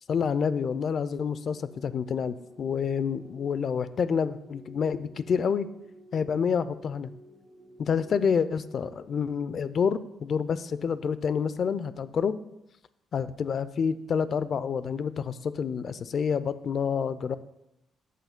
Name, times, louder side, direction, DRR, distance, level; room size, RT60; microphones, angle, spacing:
voice 1, 0.1-5.7 6.1-7.1 7.8-12.3 13.1-17.4, left 6 dB, 55° left, 14 dB, 0.5 m, -28 dB
sound 1, 1.1-9.3, left 2 dB, 35° right, 2.0 m, -52 dB
13.5 x 8.2 x 2.2 m, 0.85 s
cardioid pair, 90°, 0 cm